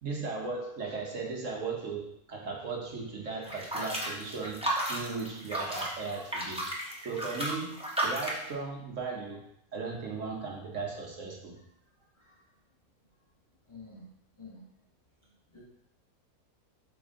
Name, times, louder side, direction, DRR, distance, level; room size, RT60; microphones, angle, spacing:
voice 1, 0.0-6.7 7.0-11.6, right 4 dB, 60° right, 0 dB, 1.3 m, -37 dB
sound 1, 3.4-8.5, right 1 dB, 5° right, 0.9 m, -33 dB
voice 2, 12.0-12.5 13.6-14.7 15.2-15.6, left 3 dB, 20° left, -4 dB, 1.1 m, -51 dB
7.8 x 3.5 x 3.7 m, 0.73 s
omnidirectional pair, 1.5 m